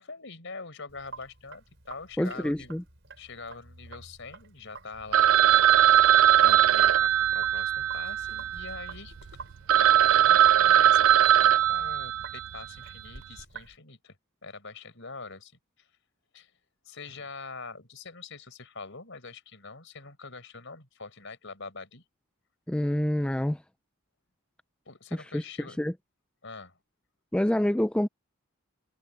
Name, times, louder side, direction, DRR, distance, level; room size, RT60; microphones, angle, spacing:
voice 1, 0.0-2.7 3.2-9.3 9.7-14.2 14.4-15.5 15.8-15.9 16.3-16.5 16.9-22.0 24.9-25.8 26.4-26.8, left 4 dB, 60° left, 5.3 m, -44 dB
Sink (filling or washing), 0.9-13.8, right 4 dB, 55° right, 5.8 m, -49 dB
voice 2, 2.2-2.8 22.7-23.6 25.1-25.4 25.8-25.9 27.3-28.1, left 1 dB, 5° left, 0.3 m, -27 dB
Telephone, 5.1-8.9 9.4-9.5 9.7-12.6, right 11 dB, 75° right, 0.4 m, -20 dB
head